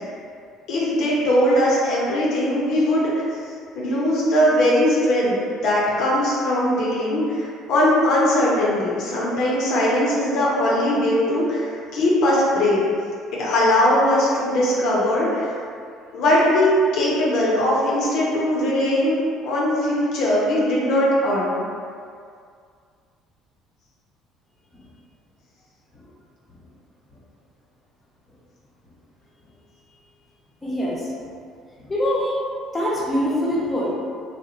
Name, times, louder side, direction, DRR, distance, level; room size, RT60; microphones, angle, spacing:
voice 1, 0.7-3.3 3.7-12.8 13.3-15.6 16.1-19.2 19.4-21.6, left 1 dB, 65° left, -5 dB, 0.6 m, -20 dB
voice 2, 30.6-31.0 31.9-32.4 32.7-33.9, equal, 20° left, -7 dB, 0.7 m, -23 dB
2.8 x 2.0 x 2.4 m, 2.2 s
supercardioid pair, 85°, 0 cm